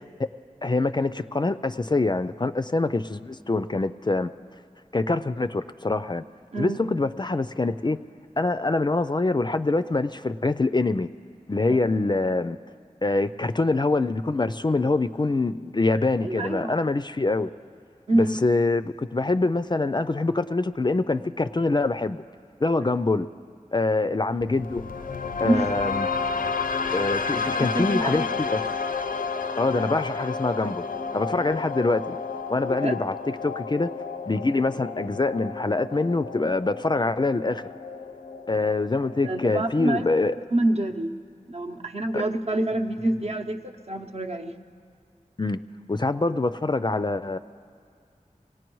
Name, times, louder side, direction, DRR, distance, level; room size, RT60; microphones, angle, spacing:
voice 1, 0.6-4.3 4.9-6.2 6.6-8.0 8.4-11.1 11.5-12.6 13.0-17.5 18.1-22.2 22.6-23.3 23.7-24.8 25.4-26.1 26.9-28.6 29.6-30.8 31.1-32.2 32.5-33.1 33.4-33.9 34.3-37.6 38.5-40.3 42.1-42.2 45.4-45.6 45.9-47.4, left 3 dB, 30° left, 11 dB, 0.4 m, -24 dB
voice 2, 16.2-16.7 18.1-18.4 25.4-25.6 26.9-27.0 27.5-28.2 32.6-33.0 39.2-40.0 40.5-41.1 41.5-44.5, right 1 dB, 50° right, 5 dB, 0.8 m, -26 dB
sound 1, 24.4-40.4, left 5 dB, 85° left, 0.5 m, -32 dB
25.0 x 18.0 x 3.1 m, 2.3 s
wide cardioid pair, 45°, 14 cm